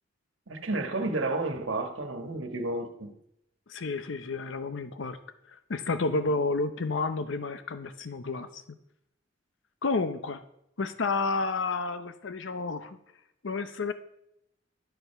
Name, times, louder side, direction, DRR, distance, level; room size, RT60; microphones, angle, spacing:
voice 1, 0.5-3.1, right 2 dB, 85° right, 1.4 m, -31 dB
voice 2, 3.7-5.2 5.5-8.6 9.8-10.4 10.8-13.0 13.4-13.9, left 3 dB, 75° left, 0.7 m, -30 dB
11.5 x 6.7 x 5.7 m
head